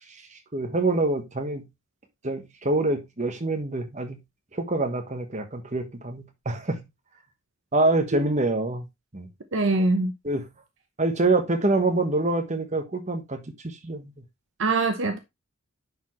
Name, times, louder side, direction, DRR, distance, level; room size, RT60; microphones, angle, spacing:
voice 1, 0.5-1.7 2.2-4.2 4.5-6.8 7.7-8.8 9.1-9.3 10.2-10.4 11.0-14.1, right 2 dB, 35° right, 1.3 m, -26 dB
voice 2, 9.5-10.1 14.6-15.2, right 3 dB, 60° right, 0.8 m, -23 dB
10.0 x 4.4 x 3.1 m
head